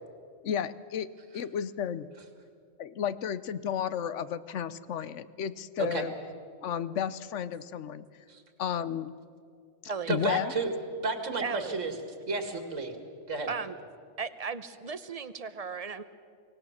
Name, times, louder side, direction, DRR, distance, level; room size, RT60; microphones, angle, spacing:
voice 1, 0.4-1.1 1.3-2.1 2.8-6.1 6.6-8.1 8.6-9.1 10.1-10.5, left 8 dB, 75° left, 15 dB, 1.0 m, -32 dB
voice 2, 10.1-10.7 11.0-11.9 12.3-12.9 13.3-13.5, right 3 dB, 75° right, 6 dB, 2.2 m, -31 dB
voice 3, 11.4-11.8 13.5-13.8 14.2-16.0, right 5 dB, 35° right, 12 dB, 0.8 m, -36 dB
24.0 x 18.0 x 7.3 m, 2.3 s
omnidirectional pair, 1.3 m